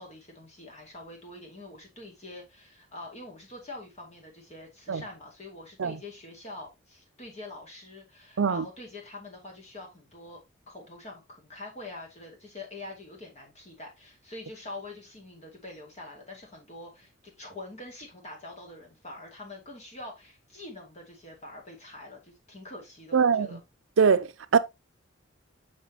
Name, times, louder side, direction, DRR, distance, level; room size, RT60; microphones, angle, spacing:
voice 1, 0.0-10.4 10.7-23.6, left 2 dB, 35° left, 2.2 m, -45 dB
voice 2, 23.1-23.6 24.0-24.6, right 6 dB, 80° right, 0.5 m, -22 dB
6.1 x 6.0 x 2.8 m
head